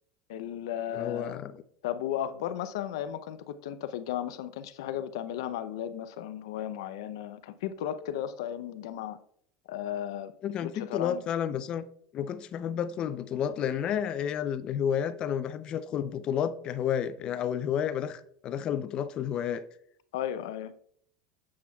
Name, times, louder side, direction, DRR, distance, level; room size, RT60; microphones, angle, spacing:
voice 1, 0.3-1.4 1.8-9.2 9.7-10.3 10.6-11.2 20.1-20.7, left 10 dB, 85° left, 0.6 m, -35 dB
voice 2, 0.9-1.6 10.4-11.9 12.1-19.6, left 9 dB, 40° left, 0.5 m, -31 dB
8.5 x 7.2 x 2.3 m
supercardioid pair, 135°, 2 cm